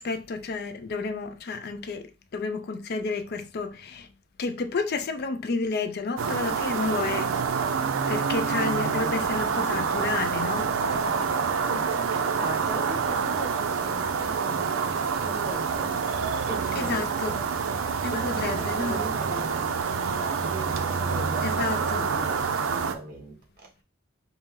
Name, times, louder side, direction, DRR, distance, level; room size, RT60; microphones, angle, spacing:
voice 1, 0.0-4.1 4.4-7.3 8.1-10.7 16.7-17.4 18.0-19.1 21.4-22.1, left 4 dB, 55° left, 0.4 m, -31 dB
sound 1, 6.2-22.9, right 5 dB, 85° right, 0.5 m, -27 dB
voice 2, 10.9-16.1 16.5-17.5 18.1-23.4, right 2 dB, 50° right, 1.1 m, -38 dB
4.1 x 2.0 x 3.6 m
head